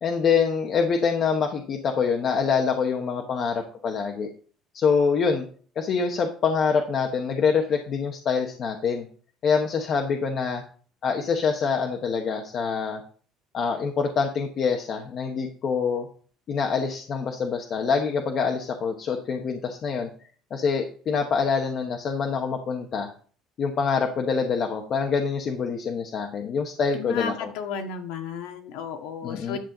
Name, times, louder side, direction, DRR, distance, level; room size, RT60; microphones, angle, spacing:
voice 1, 0.0-4.3 4.7-5.4 5.8-9.1 9.4-10.6 11.0-13.0 13.5-16.1 16.5-20.1 20.5-23.1 23.6-27.5 29.2-29.6, left 5 dB, 35° left, 3 dB, 1.0 m, -25 dB
voice 2, 26.9-29.6, left 6 dB, 90° left, 5 dB, 1.7 m, -33 dB
10.5 x 7.6 x 3.8 m, 0.43 s
cardioid pair, 175°, 0 cm